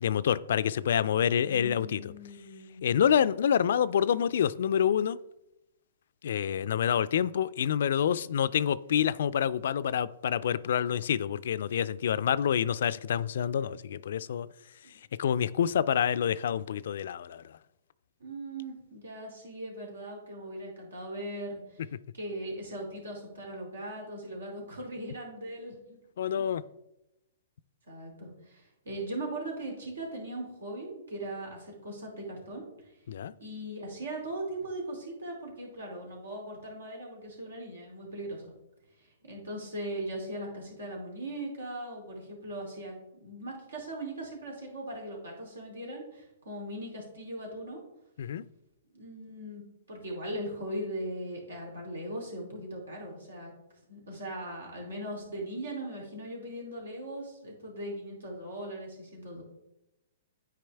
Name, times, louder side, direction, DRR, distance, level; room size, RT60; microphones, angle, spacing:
voice 1, 0.0-2.1 2.8-5.2 6.2-14.5 15.2-17.6 26.2-26.6 33.1-33.3 48.2-48.4, left 9 dB, 65° left, 0.3 m, -27 dB
voice 2, 1.4-2.8 18.2-21.8 22.1-26.0 26.3-26.5 27.9-32.9 33.4-38.5 39.0-42.9 43.2-47.8 48.9-53.5 53.9-59.4, right 1 dB, 85° right, 2.7 m, -39 dB
9.2 x 4.8 x 3.4 m
hypercardioid pair, 130°, 0 cm